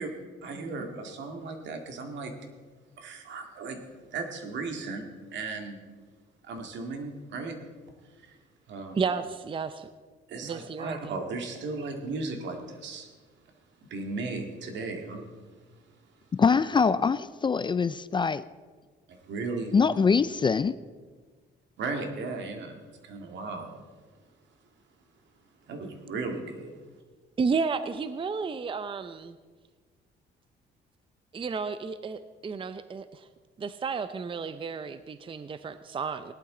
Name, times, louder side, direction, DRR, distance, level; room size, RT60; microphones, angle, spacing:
voice 1, 0.4-2.3 3.0-3.8 4.1-5.0 5.3-5.8 6.4-7.6 8.2-8.4 8.7-9.0 10.3-13.1 13.9-15.3 19.3-19.8 21.8-23.7 25.7-26.8, right 3 dB, 75° right, 4 dB, 2.0 m, -36 dB
voice 2, 8.9-9.9 10.4-11.2 27.4-29.4 31.3-33.3 33.6-36.3, right 5 dB, 25° right, 12 dB, 0.5 m, -32 dB
voice 3, 16.3-18.4 19.7-20.8, left 5 dB, 25° left, 16 dB, 0.4 m, -23 dB
17.5 x 11.5 x 3.8 m, 1.4 s
cardioid pair, 95°, 19 cm